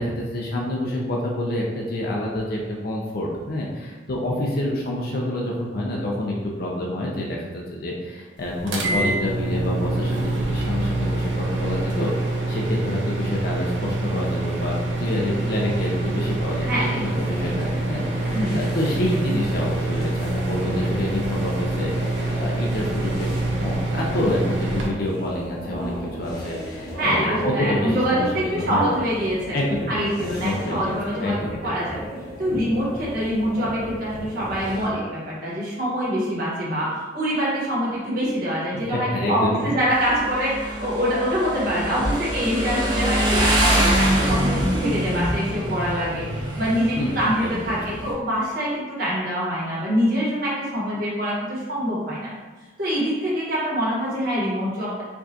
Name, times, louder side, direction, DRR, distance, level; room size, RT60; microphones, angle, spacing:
voice 1, 0.0-14.7 15.0-23.3 23.6-25.9 26.2-28.9 29.5-31.7 38.7-39.8 46.9-47.8, left 1 dB, 55° left, -3 dB, 0.5 m, -27 dB
sound 1, 8.7-24.9, right 2 dB, 85° right, 0.6 m, -26 dB
voice 2, 16.6-17.0 18.3-18.6 27.0-29.6 29.9-31.4 31.6-32.0 32.4-52.3 52.8-55.0, equal, 55° right, -7 dB, 1.3 m, -25 dB
sound 2, 17.1-34.9, equal, 20° left, 0.9 m, -36 dB
Motorcycle, 39.9-48.1, equal, 25° right, 0.6 m, -24 dB
4.6 x 2.4 x 2.7 m, 1.3 s
head